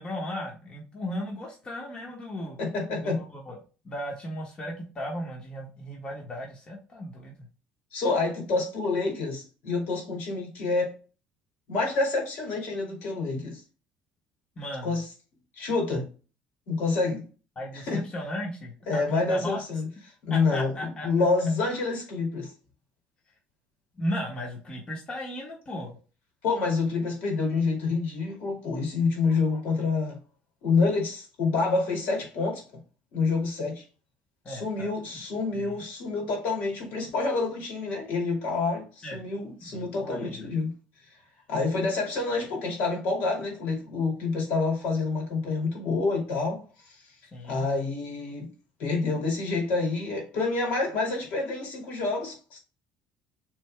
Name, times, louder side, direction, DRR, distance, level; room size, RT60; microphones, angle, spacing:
voice 1, 0.0-2.6 3.0-3.6 3.8-7.5 14.6-15.0 17.6-19.6 20.3-21.1 24.0-26.0 34.4-34.9 35.5-35.8 39.0-39.2 39.6-40.5 41.7-41.8 47.3-47.7, equal, 30° left, 1.3 m, -36 dB
voice 2, 2.6-3.2 7.9-10.9 11.7-13.6 14.8-15.0 15.6-16.1 16.7-17.2 17.9-18.0 18.9-19.9 20.2-22.5 26.4-30.2 30.6-32.6 33.1-33.8 34.5-40.7 41.5-47.0 47.4-48.5 48.8-52.6, left 3 dB, 70° left, 2.5 m, -27 dB
7.0 x 3.4 x 2.2 m
supercardioid pair, 100°, 3 cm